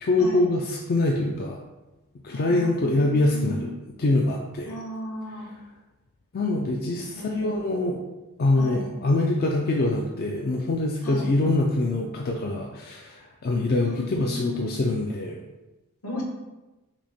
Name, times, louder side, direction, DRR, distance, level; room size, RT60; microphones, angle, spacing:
voice 1, 0.0-1.6 2.2-3.7 4.0-4.8 6.3-8.0 8.4-15.4, left 2 dB, 45° left, 0 dB, 0.4 m, -24 dB
voice 2, 2.3-3.7 4.7-5.5 7.1-7.9 8.6-8.9 11.0-11.3 13.8-14.9 16.0-16.2, left 1 dB, 65° left, -1 dB, 1.1 m, -36 dB
5.9 x 2.1 x 4.1 m, 1.1 s
head